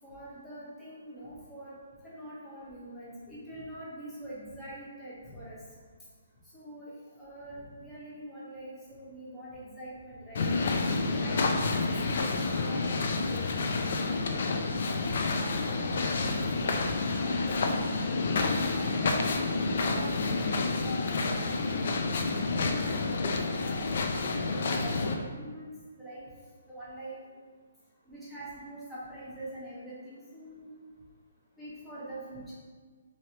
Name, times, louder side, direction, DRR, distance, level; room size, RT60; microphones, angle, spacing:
voice 1, 0.0-1.7 2.0-5.6 6.5-10.6 10.8-14.4 15.0-22.0 22.5-23.3 23.6-26.3 26.7-27.2 28.1-30.7 31.6-32.6, equal, 5° left, -10 dB, 0.8 m, -44 dB
sound 1, 10.3-25.1, left 3 dB, 55° left, 0.3 m, -29 dB
3.1 x 2.7 x 2.8 m, 1.5 s
hypercardioid pair, 160°, 0 cm